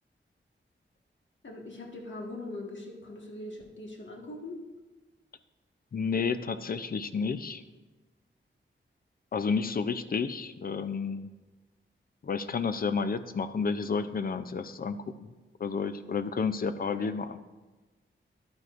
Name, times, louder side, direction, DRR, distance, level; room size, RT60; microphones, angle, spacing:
voice 1, 1.4-4.6 17.0-17.1, left 2 dB, 70° left, 0 dB, 1.5 m, -41 dB
voice 2, 5.9-7.6 9.3-11.3 12.2-15.3 15.6-17.4, left 5 dB, 50° left, 12 dB, 0.4 m, -31 dB
11.5 x 9.2 x 2.5 m, 1.2 s
wide cardioid pair, 110°, 20 cm